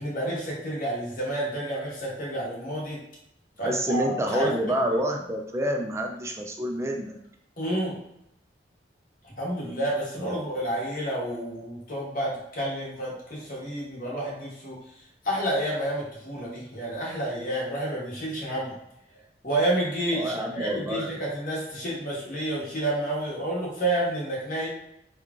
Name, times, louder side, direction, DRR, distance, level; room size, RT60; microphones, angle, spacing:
voice 1, 0.0-3.0 3.6-4.5 7.6-8.0 9.2-14.8 15.2-18.7 19.4-24.7, right 1 dB, 50° left, -5 dB, 1.1 m, -30 dB
voice 2, 3.6-7.2 10.2-10.6 20.1-21.1, right 1 dB, 15° right, 2 dB, 0.3 m, -28 dB
3.0 x 2.3 x 3.5 m, 0.83 s
head